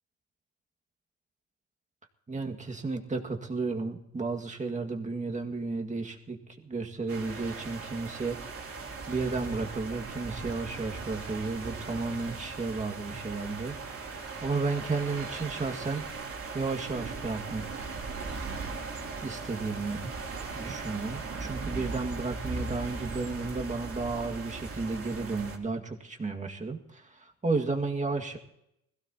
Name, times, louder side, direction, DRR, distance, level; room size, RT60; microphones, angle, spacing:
voice 1, 2.3-8.4 8.7-8.8 9.1-13.8 14.1-17.9 19.2-20.0 20.5-28.4, right 3 dB, 25° right, 3 dB, 2.0 m, -33 dB
sound 1, 7.1-25.6, right 4 dB, 50° right, 2.9 m, -38 dB
21.0 x 16.0 x 2.9 m, 0.79 s
cardioid pair, 90°, 30 cm